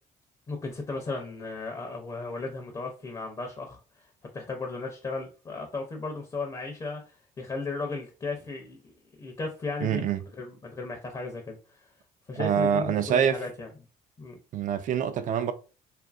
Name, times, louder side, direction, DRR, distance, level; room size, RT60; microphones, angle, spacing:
voice 1, 0.5-11.9 12.3-13.7 14.2-14.4, left 3 dB, 25° left, 0.5 m, -36 dB
voice 2, 9.8-10.2 12.4-13.4 14.5-15.5, right 8 dB, 50° right, 0.4 m, -25 dB
2.7 x 2.5 x 2.4 m
cardioid pair, 110°, 17 cm